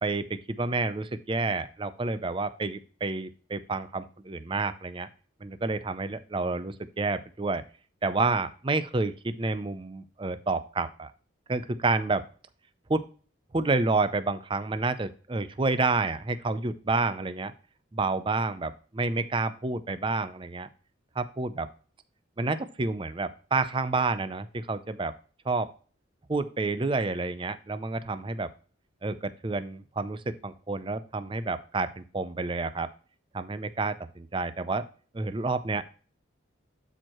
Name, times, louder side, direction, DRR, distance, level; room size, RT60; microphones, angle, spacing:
voice 1, 0.0-5.1 5.4-7.6 8.0-11.1 11.5-12.3 12.9-13.0 13.5-17.5 17.9-20.7 21.2-21.7 22.4-25.1 25.5-25.7 26.3-28.5 29.0-32.9 33.3-34.9 35.1-35.8, right 3 dB, 25° right, 12 dB, 0.5 m, -29 dB
12.0 x 4.6 x 3.0 m, 0.39 s
head